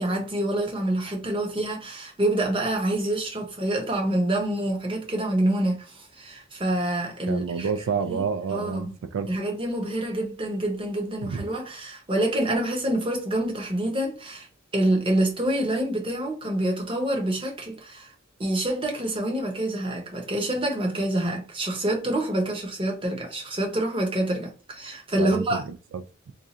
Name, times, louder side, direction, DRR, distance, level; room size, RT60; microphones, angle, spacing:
voice 1, 0.0-7.7 8.1-8.2 8.5-8.9 9.3-14.5 14.7-18.1 18.4-25.6, right 1 dB, 25° right, 0.8 m, -27 dB
voice 2, 7.3-9.3 11.2-11.4 25.2-26.3, right 6 dB, 75° right, 0.3 m, -29 dB
2.6 x 2.4 x 4.1 m
head